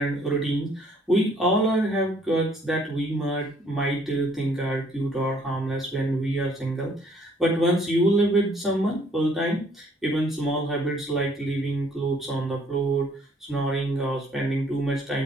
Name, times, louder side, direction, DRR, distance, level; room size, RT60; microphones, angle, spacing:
voice 1, 0.0-13.1 13.5-15.2, right 1 dB, ahead, -5 dB, 3.5 m, -25 dB
11.5 x 5.7 x 5.0 m, 0.36 s
head